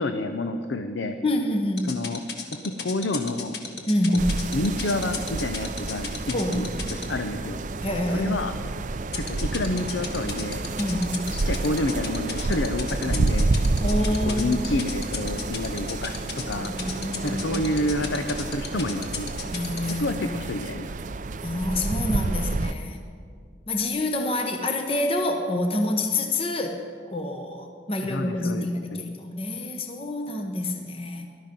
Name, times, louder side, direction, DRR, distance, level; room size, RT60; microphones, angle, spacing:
voice 1, 0.0-1.2 1.9-2.2 2.6-3.6 4.1-4.2 4.5-7.6 8.1-8.6 9.1-10.6 11.4-13.5 14.0-16.7 17.2-19.5 19.9-21.0 28.0-29.0, left 2 dB, 75° left, 7 dB, 0.7 m, -29 dB
voice 2, 1.2-1.9 3.9-4.4 6.3-6.7 7.8-8.5 10.8-11.2 13.8-14.7 16.7-17.6 19.5-20.2 21.4-23.0 23.7-26.8 27.1-31.3, left 1 dB, 30° left, 4 dB, 0.9 m, -27 dB
sound 1, 1.8-7.0 9.1-20.0, left 6 dB, 55° left, 1.6 m, -33 dB
sound 2, 4.2-22.7, right 3 dB, 40° right, 0.4 m, -29 dB
18.5 x 12.0 x 5.3 m, 2.2 s
head